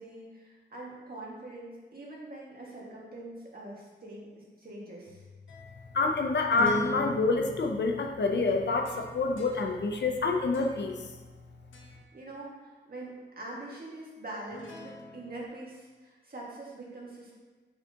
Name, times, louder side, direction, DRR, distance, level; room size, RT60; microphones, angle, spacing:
voice 1, 0.0-5.2 12.1-17.3, right 2 dB, 50° right, -4 dB, 1.8 m, -44 dB
sound 1, 5.1-11.4 11.7-12.1 14.5-15.4, left 1 dB, 80° left, 1.1 m, -41 dB
voice 2, 5.9-10.9, left 3 dB, 65° left, 3 dB, 0.7 m, -27 dB
6.3 x 5.9 x 2.9 m, 1.3 s
wide cardioid pair, 110°, 20 cm